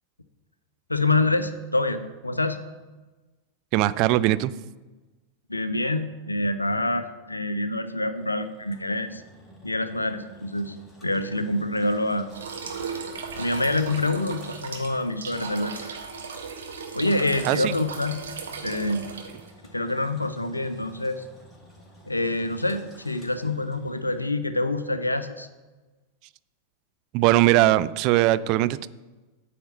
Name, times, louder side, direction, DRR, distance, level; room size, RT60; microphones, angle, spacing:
voice 1, 0.9-2.6 5.5-9.2 9.6-10.8 11.0-12.3 13.4-15.8 16.9-18.2 18.6-19.1 19.7-21.2 22.1-25.5, left 2 dB, 85° left, 10 dB, 0.6 m, -26 dB
voice 2, 3.7-4.5 17.5-17.7 27.1-28.9, right 15 dB, 40° right, 16 dB, 0.3 m, -20 dB
Engine, 8.2-24.3, equal, 10° left, 2.1 m, -52 dB
sound 1, 12.3-19.5, right 5 dB, 65° right, 1.2 m, -37 dB
9.1 x 4.3 x 7.2 m, 1.2 s
figure-of-eight pair, 90°, 0 cm